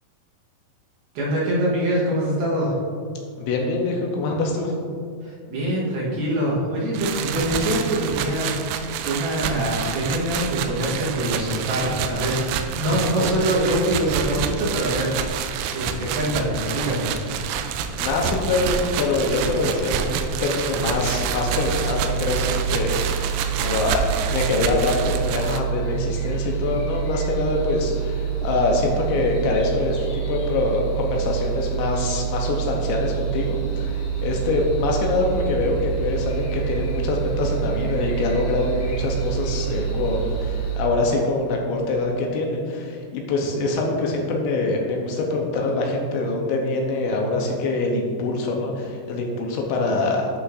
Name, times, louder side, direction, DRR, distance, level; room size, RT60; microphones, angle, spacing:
voice 1, 1.1-2.8 5.2-15.1 15.7-17.1, right 1 dB, 65° right, -6 dB, 2.7 m, -24 dB
voice 2, 3.4-4.7 12.9-13.3 18.0-50.3, left 3 dB, 80° left, 0 dB, 2.8 m, -24 dB
sound 1, 6.9-25.6, right 8 dB, 85° right, 2.6 m, -28 dB
sound 2, 20.9-40.8, right 8 dB, 65° left, 2.0 m, -27 dB
11.0 x 6.1 x 2.5 m, 2.3 s
omnidirectional pair, 5.4 m